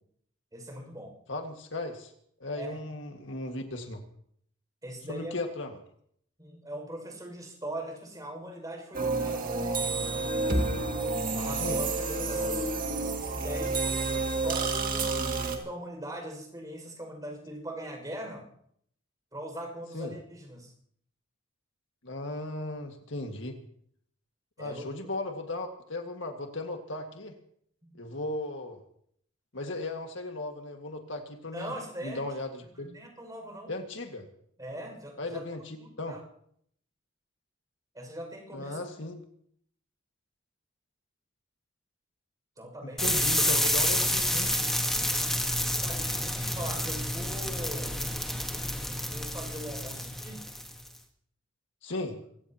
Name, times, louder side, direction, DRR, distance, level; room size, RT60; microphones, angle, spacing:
voice 1, 0.5-1.1 2.6-2.8 4.8-5.3 6.4-10.3 11.3-12.7 13.4-18.5 19.3-20.7 24.6-24.8 27.8-28.0 31.5-32.2 32.8-33.7 34.6-35.4 35.8-36.2 37.9-38.8 42.6-43.2 45.8-48.0 48.9-50.4 51.9-52.0, right 1 dB, 20° right, 1 dB, 6.0 m, -41 dB
voice 2, 1.3-2.1 2.4-4.0 5.1-5.8 11.6-11.8 19.9-20.1 22.0-23.6 24.6-27.4 27.9-28.8 29.5-31.7 32.0-32.9 33.7-34.2 35.2-36.2 38.5-39.2 42.8-44.5 51.8-52.2, left 2 dB, 65° left, 3 dB, 1.9 m, -36 dB
sound 1, 8.9-15.6, right 3 dB, 45° right, 2.2 m, -29 dB
sound 2, 43.0-50.9, left 1 dB, ahead, 1.5 m, -29 dB
25.5 x 17.0 x 3.0 m, 0.66 s
head